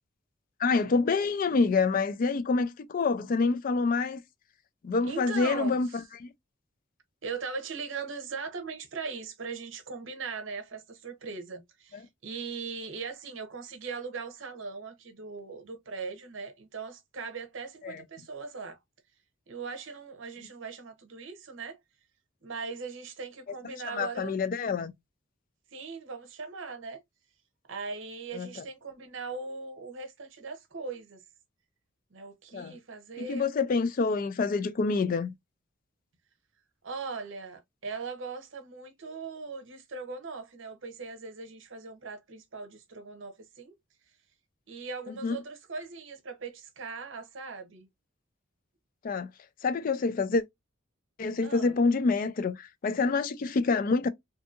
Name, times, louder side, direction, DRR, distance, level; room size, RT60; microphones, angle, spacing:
voice 1, 0.6-4.2 4.8-5.9 6.2-6.3 17.8-18.0 23.9-24.9 28.3-28.6 32.5-32.8 33.2-35.3 45.2-45.4 49.0-49.3 49.6-50.4 51.2-54.1, left 4 dB, 45° left, 0.3 m, -27 dB
voice 2, 5.0-6.0 7.2-18.8 19.5-21.8 22.4-24.4 25.7-27.0 27.7-31.2 32.1-33.5 36.8-43.7 44.7-47.9 51.4-51.8, right 4 dB, 65° right, 0.7 m, -39 dB
2.7 x 2.6 x 2.4 m
head